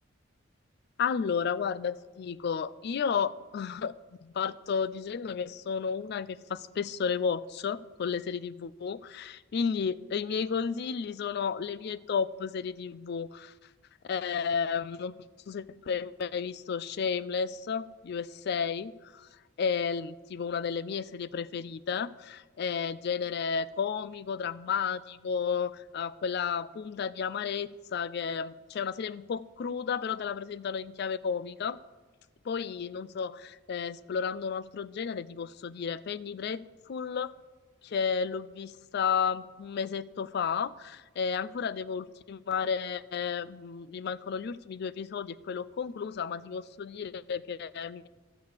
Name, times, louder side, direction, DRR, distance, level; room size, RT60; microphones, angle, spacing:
voice 1, 1.0-3.9 4.2-13.5 14.0-15.1 15.5-19.3 19.6-31.8 32.4-36.6 36.9-37.3 37.8-48.1, left 6 dB, 50° left, 17 dB, 0.3 m, -32 dB
12.5 x 4.8 x 8.1 m, 1.3 s
head